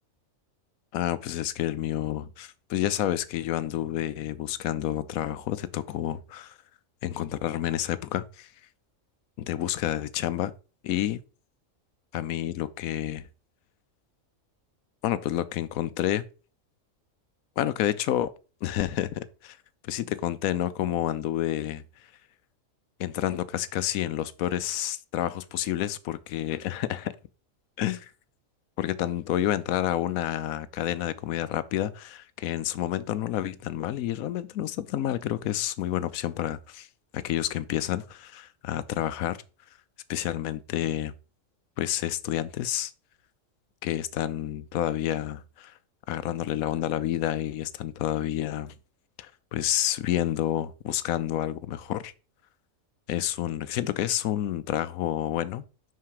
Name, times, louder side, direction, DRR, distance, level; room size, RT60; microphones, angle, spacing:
voice 1, 0.9-6.6 7.0-8.5 9.4-10.5 10.8-11.2 12.1-13.3 15.0-16.2 17.6-18.3 18.6-19.6 19.8-21.8 23.0-27.1 27.8-28.1 28.8-36.9 37.1-39.4 40.1-41.1 41.8-42.9 43.8-45.7 46.1-48.7 49.2-52.1 53.1-55.6, left 12 dB, 90° left, 1.1 m, -29 dB
5.8 x 5.8 x 4.7 m
omnidirectional pair, 1.4 m